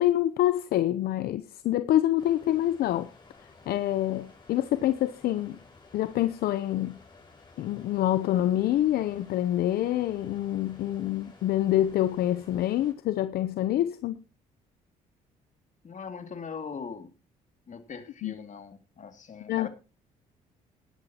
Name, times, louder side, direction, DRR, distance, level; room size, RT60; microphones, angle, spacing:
voice 1, 0.0-3.1 3.7-5.6 5.9-6.9 7.6-14.2 18.2-18.3 19.5-19.7, left 13 dB, 70° left, 0.7 m, -26 dB
sound 1, 2.2-12.9, left 3 dB, 30° left, 6.5 m, -54 dB
voice 2, 15.8-17.1 17.7-19.7, left 6 dB, 50° left, 2.4 m, -40 dB
17.5 x 11.5 x 2.9 m
supercardioid pair, 60°, 17 cm